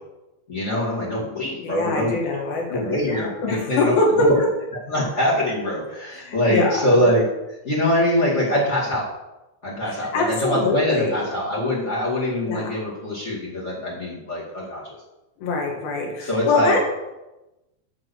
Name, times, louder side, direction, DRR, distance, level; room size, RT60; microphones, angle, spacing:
voice 1, 0.5-2.2 2.7-4.5 4.9-7.2 7.6-9.1 9.6-14.8 16.2-16.8, left 1 dB, 35° left, -5 dB, 1.1 m, -23 dB
voice 2, 1.4-4.3 6.2-7.0 9.9-11.3 12.5-12.7 15.4-16.8, left 3 dB, 60° left, 0 dB, 3.0 m, -23 dB
8.2 x 6.2 x 6.4 m, 1.0 s
omnidirectional pair, 5.2 m